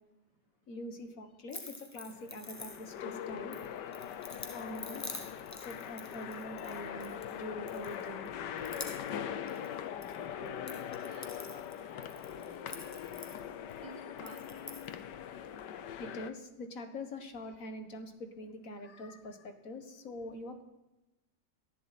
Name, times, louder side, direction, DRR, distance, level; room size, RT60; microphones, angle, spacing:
voice 1, 0.7-3.6 4.3-5.0 5.6-8.3 12.6-13.2 16.0-20.6, left 1 dB, 50° left, 7 dB, 1.8 m, -44 dB
sound 1, 1.5-3.1 3.5-7.4 7.7-8.3 8.6-10.2 10.5-13.8 14.2-14.9, left 2 dB, 15° left, 0.8 m, -47 dB
sound 2, 2.0-16.3, left 9 dB, 75° left, 1.4 m, -42 dB
voice 2, 10.4-10.7 11.1-12.8 13.8-14.7, right 3 dB, 75° right, 1 dB, 1.9 m, -54 dB
18.5 x 11.0 x 4.2 m, 1.0 s
omnidirectional pair, 1.9 m